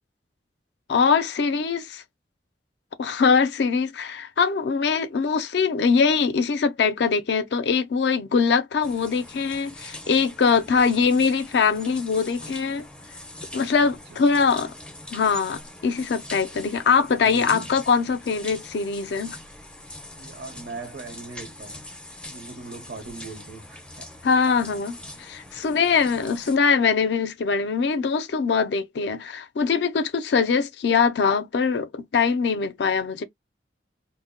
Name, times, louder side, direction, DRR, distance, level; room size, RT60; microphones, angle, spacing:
voice 1, 0.9-2.0 3.0-12.9 13.5-14.7 15.1-19.4 24.2-24.9 25.2-33.2, left 5 dB, 75° left, 0.4 m, -22 dB
sound 1, 8.8-26.6, left 1 dB, 5° left, 0.4 m, -42 dB
voice 2, 13.8-14.2 17.1-17.8 20.2-21.8 22.3-24.1 24.5-24.8 26.0-26.1, right 3 dB, 65° right, 0.7 m, -40 dB
2.1 x 2.1 x 3.6 m
head